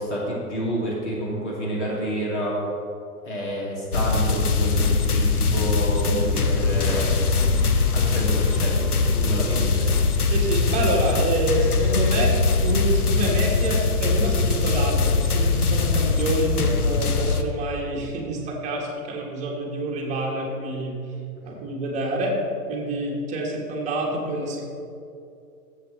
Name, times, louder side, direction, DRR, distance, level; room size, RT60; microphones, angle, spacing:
voice 1, 0.0-2.6 3.2-7.1 7.9-9.7, right 1 dB, 45° left, -4 dB, 2.6 m, -28 dB
sound 1, 3.9-17.4, left 4 dB, 70° left, 0.9 m, -22 dB
voice 2, 10.3-12.3 12.6-21.0 21.4-22.4 22.7-24.6, right 1 dB, 15° right, -2 dB, 1.5 m, -27 dB
13.5 x 7.7 x 3.2 m, 2.5 s
figure-of-eight pair, 120°, 47 cm